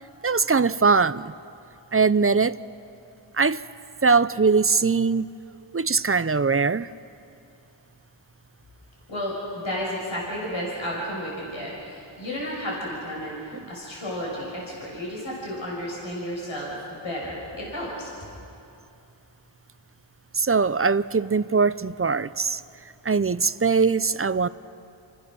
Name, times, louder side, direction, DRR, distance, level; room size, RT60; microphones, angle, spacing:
voice 1, 0.2-1.3 1.9-2.5 3.4-3.6 4.0-5.3 5.7-6.9 20.3-22.6 23.0-24.5, right 4 dB, 30° right, 0.6 m, -21 dB
voice 2, 9.1-13.4 13.7-18.1, equal, 70° left, 6.4 m, -32 dB
29.5 x 25.5 x 6.3 m
wide cardioid pair, 50°, 48 cm